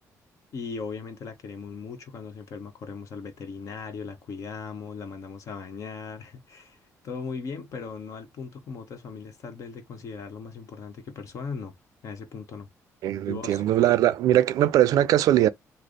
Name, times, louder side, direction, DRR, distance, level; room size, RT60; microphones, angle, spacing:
voice 1, 0.5-6.8 7.0-11.7 12.0-12.7 13.3-13.6, left 5 dB, 60° left, 1.1 m, -38 dB
voice 2, 13.0-15.5, right 12 dB, 85° right, 0.4 m, -21 dB
3.2 x 2.0 x 3.9 m
cardioid pair, 130°, 6 cm